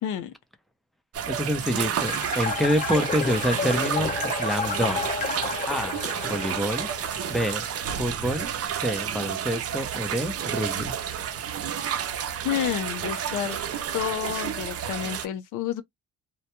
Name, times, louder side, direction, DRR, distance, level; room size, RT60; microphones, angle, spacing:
voice 1, 0.0-0.3 12.4-13.6 13.9-15.8, left 11 dB, 85° left, 0.6 m, -29 dB
sound 1, 1.1-15.3, right 9 dB, 50° right, 0.5 m, -31 dB
voice 2, 1.3-5.1 5.7-6.9 7.3-7.6 8.0-8.5 8.8-10.9, equal, ahead, 0.5 m, -27 dB
sound 2, 2.0-7.7, left 4 dB, 25° left, 0.8 m, -31 dB
2.2 x 2.2 x 2.8 m
cardioid pair, 90°, 30 cm